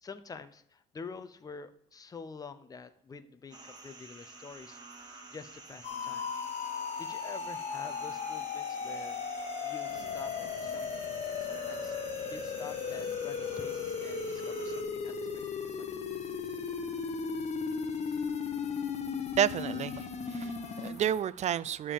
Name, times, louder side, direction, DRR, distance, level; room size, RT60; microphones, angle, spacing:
voice 1, 0.0-6.3 7.0-9.3 9.6-11.0 11.4-12.0 12.3-16.0, left 5 dB, 20° left, 0.7 m, -48 dB
sound 1, 3.5-14.8, right 3 dB, 25° right, 1.5 m, -50 dB
sound 2, 5.8-20.9, left 5 dB, 40° left, 1.0 m, -36 dB
sound 3, 9.9-21.2, left 7 dB, 70° left, 1.1 m, -52 dB
voice 2, 19.3-21.9, right 9 dB, 45° right, 0.4 m, -31 dB
11.0 x 3.7 x 7.1 m
cardioid pair, 110°, 17 cm